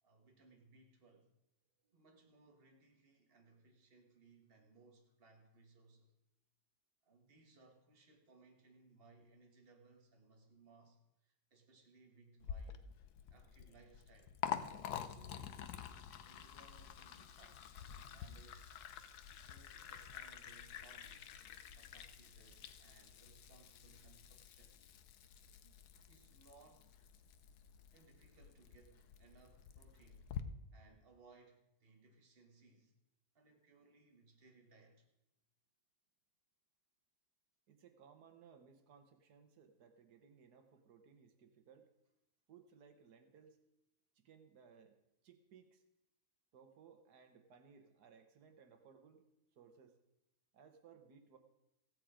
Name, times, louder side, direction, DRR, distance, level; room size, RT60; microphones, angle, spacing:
voice 1, 0.0-1.3 1.9-6.1 7.0-12.9 13.3-14.4 14.7-18.8 19.4-21.3 21.8-24.9 25.6-25.7 26.1-26.9 27.9-30.3 30.7-32.9 33.4-35.1, right 3 dB, 40° right, 3 dB, 1.7 m, -66 dB
Liquid, 12.4-30.4, left 9 dB, 80° left, 1.3 m, -49 dB
voice 2, 37.7-41.9 42.5-43.6 44.1-45.0 45.2-45.8 46.5-49.2 49.5-50.0 50.5-51.4, right 6 dB, 90° right, 7 dB, 1.7 m, -62 dB
15.5 x 8.4 x 5.0 m, 0.87 s
omnidirectional pair, 1.6 m